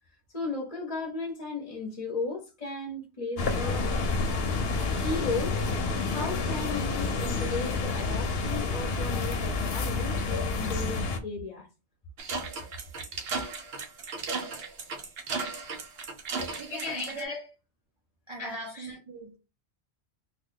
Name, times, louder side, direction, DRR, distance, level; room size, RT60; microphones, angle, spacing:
voice 1, 0.3-3.9 5.0-5.6 6.1-11.7 16.3-17.4 18.4-19.0, left 3 dB, 35° left, 0.7 m, -35 dB
sound 1, 3.4-11.2, left 3 dB, 65° left, 0.8 m, -29 dB
sound 2, 12.2-17.2, right 4 dB, 65° right, 0.9 m, -35 dB
voice 2, 16.2-17.2 18.3-19.4, right 3 dB, 35° right, 0.5 m, -42 dB
3.1 x 2.2 x 3.7 m
omnidirectional pair, 1.1 m